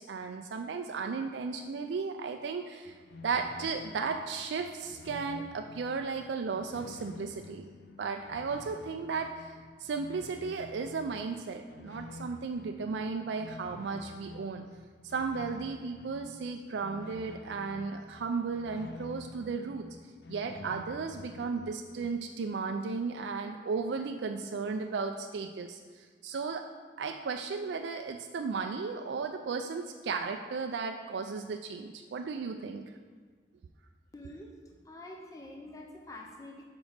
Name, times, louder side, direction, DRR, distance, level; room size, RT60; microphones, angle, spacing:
voice 1, 0.0-3.0 3.2-7.7 8.0-9.5 9.8-14.7 15.0-19.9 20.3-26.6 27.0-32.9, right 4 dB, 80° right, 5 dB, 0.4 m, -35 dB
sound 1, 2.8-22.1, left 3 dB, 70° left, 0.5 m, -49 dB
voice 2, 34.1-36.6, left 1 dB, 20° left, 1 dB, 0.5 m, -47 dB
5.1 x 5.0 x 6.4 m, 1.5 s
head